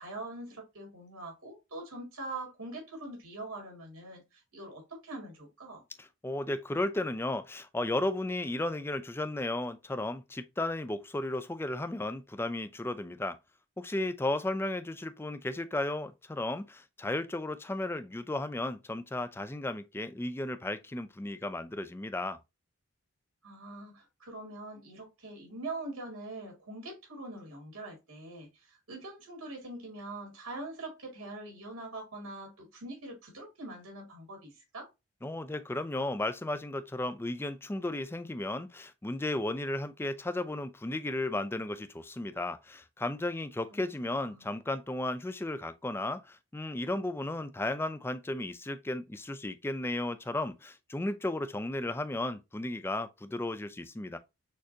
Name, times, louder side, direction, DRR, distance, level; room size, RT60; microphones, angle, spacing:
voice 1, 0.0-5.8 23.4-34.9 43.7-43.8 44.1-44.4, right 2 dB, 85° right, 2.3 m, -43 dB
voice 2, 6.0-13.4 13.8-22.4 35.2-54.2, left 2 dB, 10° left, 0.3 m, -34 dB
6.4 x 2.5 x 2.7 m
head